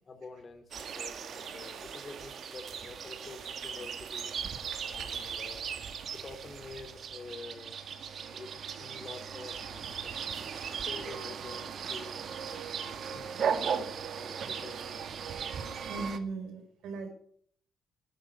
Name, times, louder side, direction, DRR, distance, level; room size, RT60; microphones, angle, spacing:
voice 1, 0.0-4.3 4.9-5.7 6.1-7.8 8.3-10.1 10.7-15.3, left 3 dB, 40° left, 8 dB, 3.1 m, -48 dB
sound 1, 0.7-16.2, right 7 dB, 60° right, 1.7 m, -37 dB
voice 2, 15.9-17.1, right 3 dB, 80° right, 6 dB, 4.4 m, -38 dB
12.5 x 9.0 x 9.2 m, 0.62 s
cardioid pair, 90°, 0 cm